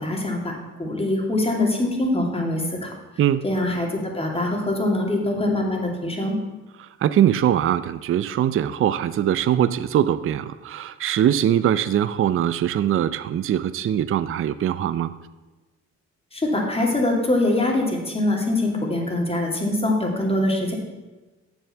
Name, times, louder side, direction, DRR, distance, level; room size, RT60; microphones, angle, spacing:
voice 1, 0.0-2.9 3.4-6.4 16.3-20.7, left 1 dB, 20° left, 0 dB, 2.6 m, -23 dB
voice 2, 6.8-15.1, right 10 dB, 45° right, 13 dB, 0.5 m, -22 dB
8.9 x 7.1 x 6.7 m, 1.2 s
cardioid pair, 90°, 30 cm